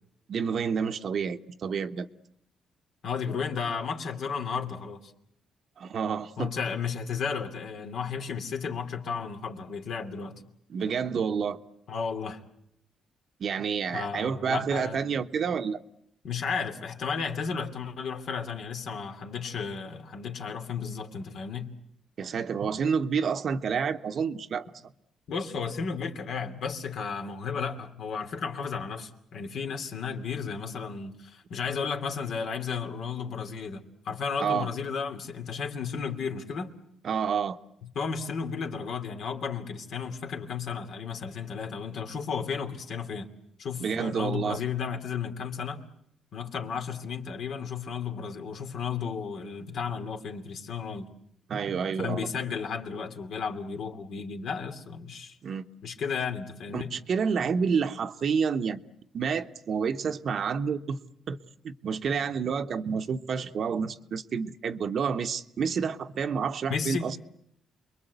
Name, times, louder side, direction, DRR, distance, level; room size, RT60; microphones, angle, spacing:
voice 1, 0.3-2.1 5.8-6.5 10.7-11.6 13.4-15.8 22.2-24.7 34.4-34.7 37.0-37.6 43.8-44.6 51.5-52.3 55.4-55.6 56.7-58.8 59.1-61.0 61.3-61.4 61.6-67.2, right 6 dB, 55° right, 1.0 m, -29 dB
voice 2, 3.0-5.1 6.4-10.4 11.9-12.4 13.9-15.0 16.2-21.8 25.3-36.7 37.9-43.3 43.6-45.8 46.3-51.1 52.0-55.4 55.8-56.9 66.7-67.2, left 6 dB, 70° left, 2.8 m, -33 dB
28.5 x 22.0 x 8.1 m
cardioid pair, 90°, 0 cm